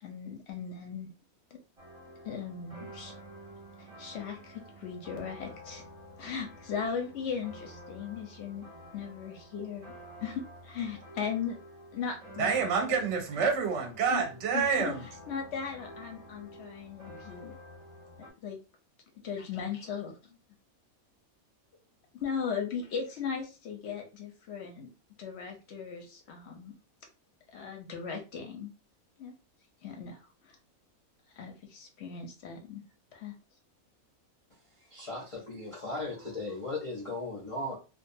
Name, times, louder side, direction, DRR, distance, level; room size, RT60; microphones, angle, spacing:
voice 1, 0.0-1.1 1.5-1.6 2.2-3.1 3.8-5.9 6.2-8.6 8.9-9.9 10.2-11.6 11.9-12.6 14.1-14.2 14.5-14.9 15.3-17.6 18.2-18.6 19.2-20.4 22.1-24.9 25.2-26.7 27.5-28.7 29.2-29.3 29.8-30.6 31.4-32.8 33.1-33.3, left 6 dB, 60° left, 0.7 m, -38 dB
sound 1, 1.8-18.3, equal, 35° right, 0.7 m, -50 dB
voice 2, 12.4-15.0, right 5 dB, 65° right, 0.8 m, -28 dB
voice 3, 34.9-37.8, left 2 dB, 45° left, 0.4 m, -37 dB
2.4 x 2.3 x 2.6 m
omnidirectional pair, 1.5 m